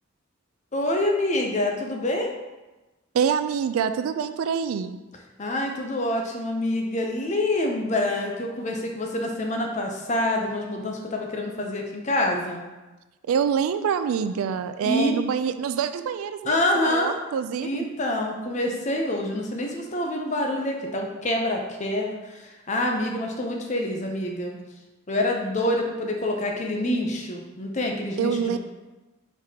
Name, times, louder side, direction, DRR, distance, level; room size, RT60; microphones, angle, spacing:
voice 1, 0.7-2.3 5.4-12.7 14.8-15.2 16.4-17.2 17.6-24.6 25.1-28.6, left 1 dB, 35° left, 1 dB, 0.6 m, -26 dB
voice 2, 3.1-5.0 13.3-16.6 16.9-17.9 28.2-28.6, right 7 dB, 80° right, 10 dB, 0.3 m, -25 dB
4.6 x 4.1 x 2.8 m, 1.1 s
head